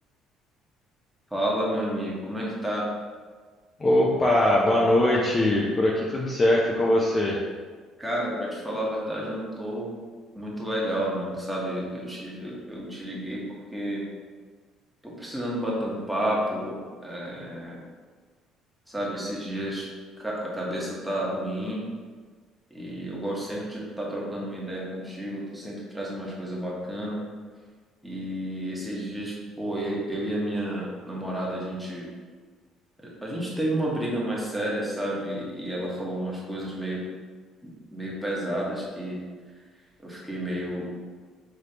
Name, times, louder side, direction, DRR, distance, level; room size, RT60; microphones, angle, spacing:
voice 1, 1.3-2.9 8.0-9.9 10.3-13.4 13.7-14.0 15.0-17.8 18.9-19.9 20.2-21.8 22.7-27.2 28.0-32.1 33.0-37.0 37.9-39.2 40.0-40.9, right 1 dB, 5° right, -5 dB, 1.2 m, -31 dB
voice 2, 3.8-7.4, left 1 dB, 25° left, -3 dB, 0.5 m, -21 dB
5.1 x 3.0 x 2.9 m, 1.5 s
cardioid pair, 115°, 0 cm